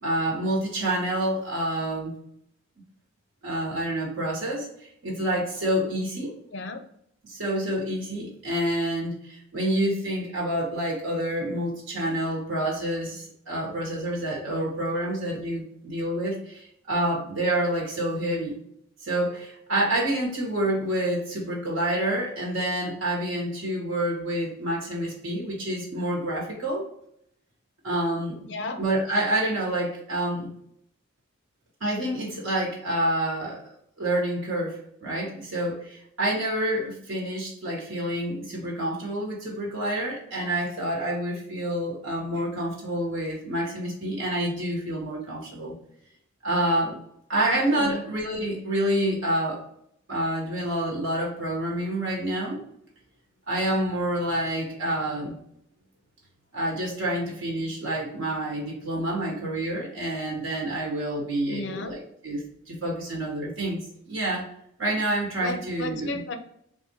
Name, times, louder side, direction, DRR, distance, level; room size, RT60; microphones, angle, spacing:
voice 1, 0.0-2.1 3.4-6.3 7.2-18.6 19.0-26.8 27.8-28.4 28.8-30.5 31.8-33.6 34.0-45.7 46.4-47.0 47.3-49.6 50.1-52.6 53.5-55.3 56.5-62.0 62.2-62.4 62.7-64.5 64.8-66.2, right 1 dB, 65° right, -3 dB, 1.3 m, -28 dB
voice 2, 28.4-28.8 47.4-48.0 61.5-61.9 65.4-66.3, left 2 dB, 55° left, 7 dB, 0.5 m, -34 dB
3.8 x 2.5 x 2.8 m, 0.72 s
head